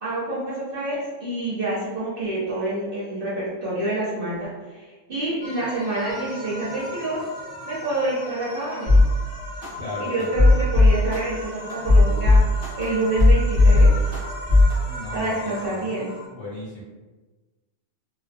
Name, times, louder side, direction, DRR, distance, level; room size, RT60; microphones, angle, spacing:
voice 1, 0.0-7.2 7.6-8.9 10.0-12.4 12.8-14.0 15.1-16.1, right 2 dB, 55° right, -8 dB, 0.7 m, -27 dB
sound 1, 5.4-16.3, left 1 dB, 45° left, 0.5 m, -37 dB
sound 2, 8.9-9.0 9.6-9.7 10.2-11.2 11.7-12.8 13.2-14.2 14.5-14.7, left 2 dB, 15° right, 0.7 m, -14 dB
voice 2, 9.8-10.3 14.8-15.9 16.3-16.8, left 1 dB, 75° left, -6 dB, 1.3 m, -36 dB
2.5 x 2.1 x 2.5 m, 1.3 s
omnidirectional pair, 1.4 m